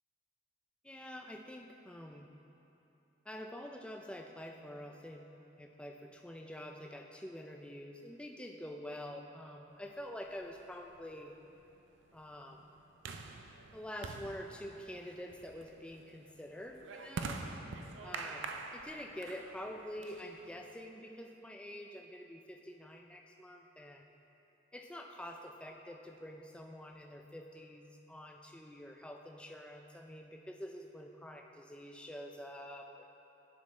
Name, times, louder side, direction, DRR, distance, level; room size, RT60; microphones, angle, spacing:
voice 1, 0.8-2.3 3.3-5.3 5.6-11.4 12.1-12.6 13.7-17.4 18.0-24.1 24.7-33.1, equal, 5° left, 2 dB, 0.3 m, -47 dB
sound 1, 10.3-20.7, right 4 dB, 80° right, 0.5 m, -46 dB
10.0 x 6.3 x 3.2 m, 3.0 s
head